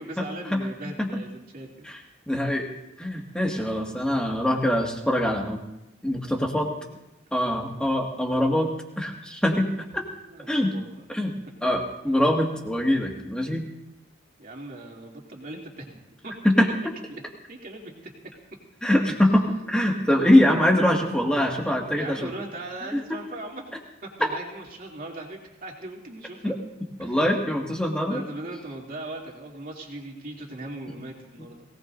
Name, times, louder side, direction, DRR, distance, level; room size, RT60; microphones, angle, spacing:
voice 1, 0.0-1.9 6.9-7.0 10.3-11.0 14.4-16.5 17.1-17.2 17.5-17.9 21.9-23.6 24.0-26.6 27.0-27.2 28.1-31.6, right 2 dB, 45° right, -1 dB, 2.9 m, -39 dB
voice 2, 2.3-2.7 3.0-5.6 6.0-6.7 7.3-8.7 9.0-9.7 9.9-10.0 10.5-10.7 11.1-11.3 11.6-13.6 16.4-16.9 18.8-22.3 22.9-23.2 26.4-26.6 27.0-28.2, left 1 dB, 5° left, 0 dB, 1.9 m, -23 dB
22.0 x 18.0 x 2.7 m, 0.89 s
head